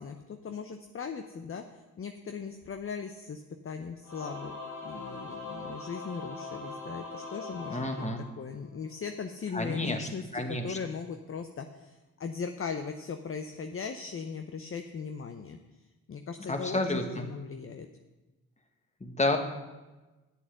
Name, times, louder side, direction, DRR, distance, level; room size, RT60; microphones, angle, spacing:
voice 1, 0.0-4.6 4.8-8.0 8.4-15.6 16.1-17.9, left 5 dB, 40° left, 6 dB, 0.7 m, -39 dB
Singing / Musical instrument, 4.0-8.9, left 3 dB, 75° left, 3.4 m, -41 dB
voice 2, 7.7-8.2 9.5-10.8 16.4-17.3 19.0-19.4, left 2 dB, 20° left, 5 dB, 1.5 m, -30 dB
8.4 x 7.2 x 6.4 m, 1.1 s
supercardioid pair, 50°, 35 cm